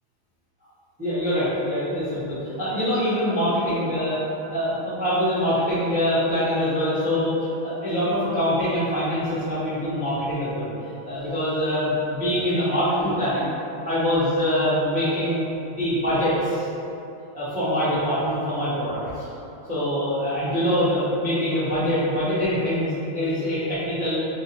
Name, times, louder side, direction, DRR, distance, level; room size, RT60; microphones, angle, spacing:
voice 1, 1.0-4.2 4.5-10.7 11.0-13.5 13.8-15.4 15.7-16.7 17.3-19.2 19.7-24.2, equal, 10° right, -13 dB, 0.4 m, -24 dB
3.7 x 2.5 x 4.1 m, 2.8 s
omnidirectional pair, 2.3 m